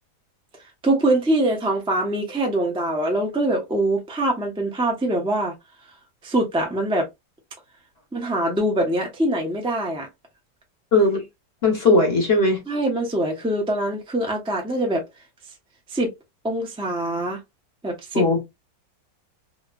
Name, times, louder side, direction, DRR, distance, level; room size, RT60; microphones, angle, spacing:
voice 1, 0.8-5.5 6.2-7.1 8.1-10.1 12.7-15.0 15.9-16.1 16.4-17.4 17.8-18.2, right 1 dB, 5° right, 0.4 m, -23 dB
voice 2, 10.9-11.2 11.6-12.6 18.1-18.4, left 2 dB, 45° left, 0.9 m, -18 dB
3.1 x 2.8 x 2.3 m
omnidirectional pair, 1.9 m